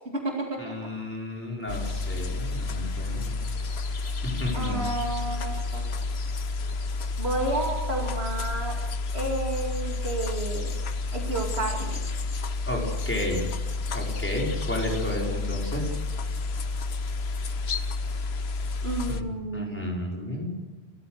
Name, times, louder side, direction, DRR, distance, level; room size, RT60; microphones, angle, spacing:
voice 1, 0.0-0.7 4.5-5.8 7.2-8.8 9.1-10.7 11.1-12.0 18.8-19.7, right 2 dB, 80° right, 0 dB, 2.9 m, -31 dB
voice 2, 0.6-3.5 4.2-4.8 12.6-13.4 13.9-15.9 19.1-20.5, left 1 dB, 10° left, -2 dB, 5.6 m, -32 dB
sound 1, 1.7-19.2, left 3 dB, 80° left, 1.2 m, -30 dB
29.5 x 13.5 x 6.7 m, 1.2 s
omnidirectional pair, 1.1 m